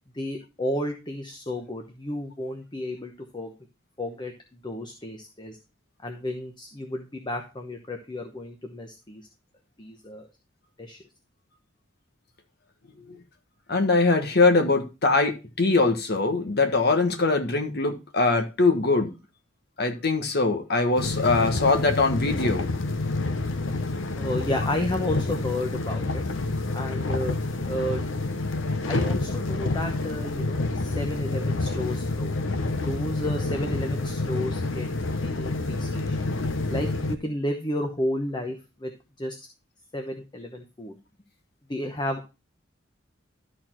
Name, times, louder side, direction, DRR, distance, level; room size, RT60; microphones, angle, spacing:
voice 1, 0.1-3.5 4.0-5.6 6.0-9.2 9.8-10.2 10.8-11.0 24.2-26.2 26.7-27.4 27.7-28.1 28.9-32.3 32.8-36.2 36.7-38.9 39.2-39.4 39.9-41.0 41.7-42.3, left 1 dB, 25° left, 4 dB, 1.0 m, -32 dB
voice 2, 13.7-19.1 19.8-22.7 28.7-28.8, left 3 dB, 55° left, 6 dB, 1.5 m, -22 dB
sound 1, 21.0-37.2, left 2 dB, 75° left, 0.7 m, -28 dB
13.0 x 4.4 x 4.4 m, 0.29 s
head